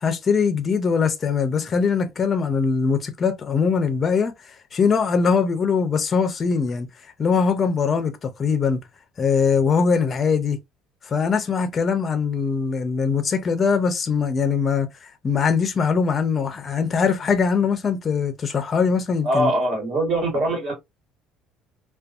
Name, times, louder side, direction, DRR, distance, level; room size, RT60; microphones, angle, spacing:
voice 1, 0.0-4.3 4.7-6.9 7.2-8.8 9.2-10.6 11.1-14.9 15.2-19.5, left 5 dB, 25° left, 0.5 m, -21 dB
voice 2, 19.2-20.7, right 1 dB, 50° right, 1.6 m, -22 dB
2.6 x 2.2 x 2.4 m
cardioid pair, 160°, 0 cm